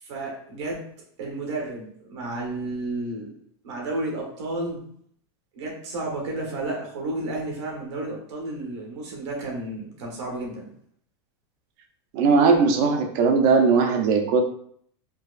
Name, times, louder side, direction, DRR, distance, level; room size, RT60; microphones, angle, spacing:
voice 1, 0.0-0.8 1.2-3.3 3.6-4.8 5.5-10.7, right 2 dB, 80° right, 0 dB, 1.4 m, -32 dB
voice 2, 12.1-14.4, right 4 dB, 45° right, 4 dB, 0.6 m, -19 dB
4.6 x 2.4 x 2.4 m, 0.63 s
supercardioid pair, 160°, 14 cm